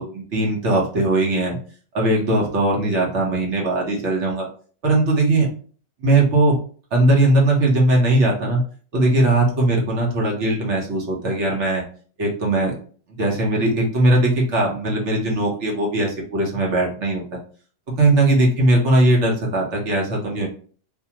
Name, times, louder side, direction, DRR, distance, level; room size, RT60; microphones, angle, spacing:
voice 1, 0.0-1.6 1.9-4.5 4.8-5.5 6.0-6.6 6.9-8.6 8.9-11.8 12.2-12.7 13.2-17.2 18.0-20.5, right 2 dB, 55° right, -1 dB, 1.1 m, -19 dB
3.5 x 2.2 x 2.8 m, 0.43 s
omnidirectional pair, 1.6 m